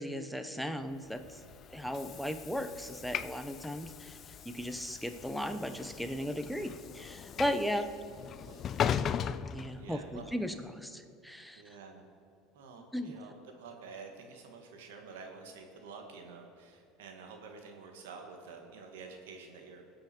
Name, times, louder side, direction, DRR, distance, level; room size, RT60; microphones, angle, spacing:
voice 1, 0.0-1.4 1.7-7.9 9.5-11.8 12.9-13.2, equal, ahead, 7 dB, 1.0 m, -36 dB
Train / Sliding door, 1.1-10.4, left 8 dB, 40° left, 0.4 m, -39 dB
voice 2, 8.2-8.6 9.7-10.3 11.6-12.0 12.5-19.8, right 4 dB, 85° right, 3 dB, 1.8 m, -49 dB
21.5 x 7.6 x 4.6 m, 2.4 s
supercardioid pair, 100°, 0 cm